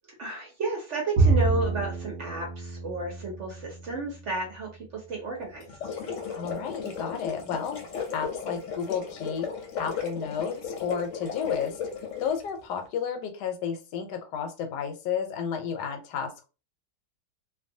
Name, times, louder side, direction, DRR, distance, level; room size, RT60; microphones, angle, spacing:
voice 1, 0.2-5.8, right 2 dB, 60° right, 0 dB, 0.8 m, -32 dB
Bowed string instrument, 1.2-4.6, right 3 dB, 90° right, 0.5 m, -27 dB
sound 1, 5.6-12.4, left 6 dB, 65° left, 0.9 m, -35 dB
voice 2, 6.3-7.8 8.1-9.5 9.8-11.8 12.2-16.4, left 7 dB, 85° left, 5 dB, 1.2 m, -32 dB
2.6 x 2.2 x 2.6 m, 0.32 s
omnidirectional pair, 1.8 m